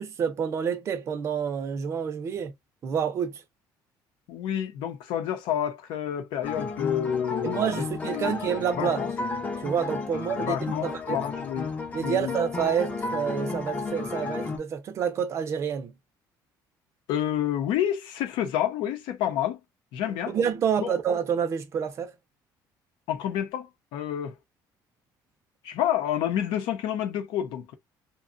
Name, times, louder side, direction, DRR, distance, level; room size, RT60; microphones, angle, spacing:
voice 1, 0.0-2.5 2.8-3.4 7.4-9.0 9.6-10.6 10.8-11.2 11.9-15.9 20.3-22.1, right 7 dB, 35° right, 0.5 m, -28 dB
voice 2, 4.3-8.4 8.8-9.1 10.3-11.7 12.0-12.4 17.1-19.6 19.9-20.4 20.8-21.0 23.1-24.3 25.6-27.7, left 10 dB, 80° left, 0.8 m, -29 dB
sound 1, 6.4-14.6, left 4 dB, 20° left, 0.5 m, -33 dB
2.7 x 2.2 x 2.5 m
cardioid pair, 165°, 8 cm